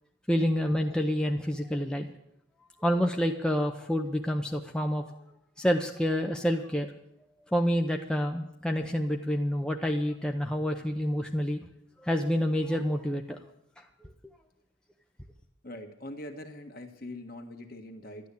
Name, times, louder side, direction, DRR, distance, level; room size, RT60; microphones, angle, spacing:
voice 1, 0.3-2.1 2.8-5.0 5.6-6.9 7.5-11.7 12.0-13.4 13.8-13.9, equal, 5° left, 2 dB, 0.7 m, -28 dB
voice 2, 15.6-18.3, left 1 dB, 45° left, 5 dB, 1.7 m, -42 dB
12.0 x 12.0 x 8.4 m, 0.80 s
head